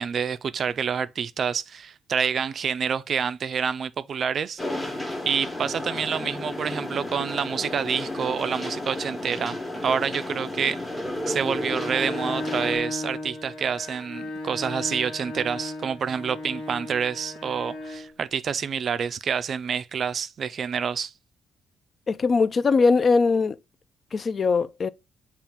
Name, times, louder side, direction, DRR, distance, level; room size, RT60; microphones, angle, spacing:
voice 1, 0.0-4.6 5.0-10.8 11.3-21.1, right 7 dB, 55° right, 0.3 m, -28 dB
sound 1, 4.6-12.8, left 1 dB, 15° left, 1.0 m, -32 dB
Bowed string instrument, 11.0-18.1, left 2 dB, 75° left, 1.5 m, -35 dB
voice 2, 22.1-23.6 24.1-24.9, left 4 dB, 40° left, 0.3 m, -21 dB
5.6 x 2.4 x 3.4 m
cardioid pair, 90°, 0 cm